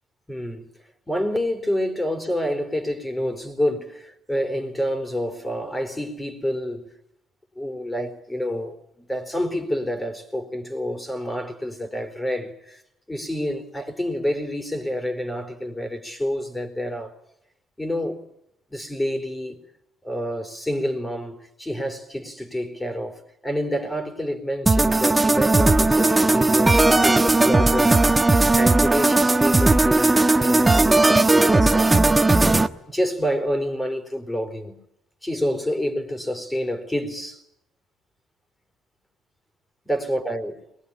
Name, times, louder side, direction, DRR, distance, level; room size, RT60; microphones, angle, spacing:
voice 1, 0.3-0.7 1.1-6.9 7.6-12.8 13.1-17.1 17.8-18.2 18.7-19.6 20.0-32.0 32.9-34.8 35.2-37.4 39.9-40.5, equal, 15° left, 4.2 m, -28 dB
sound 1, 24.7-32.7, right 2 dB, 15° right, 1.2 m, -17 dB
22.5 x 21.0 x 10.0 m
supercardioid pair, 80°, 0 cm